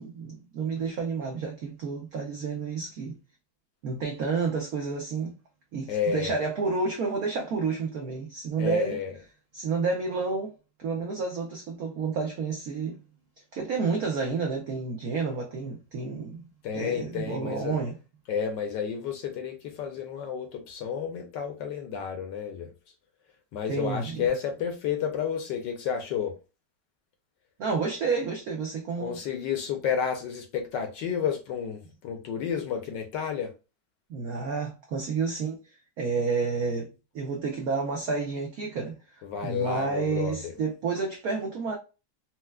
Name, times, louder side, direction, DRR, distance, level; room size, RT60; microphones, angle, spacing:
voice 1, 0.0-3.2 3.8-5.3 5.7-9.0 9.5-10.5 10.8-13.0 13.5-16.5 16.7-17.9 23.7-24.2 27.6-29.2 34.1-35.6 36.0-36.9 37.1-41.8, right 4 dB, 75° right, 0.8 m, -30 dB
voice 2, 5.9-6.3 8.6-9.2 16.6-17.8 18.3-22.9 23.5-26.4 29.0-33.5 39.2-40.5, left 7 dB, 70° left, 1.1 m, -31 dB
4.4 x 2.1 x 2.2 m
omnidirectional pair, 2.3 m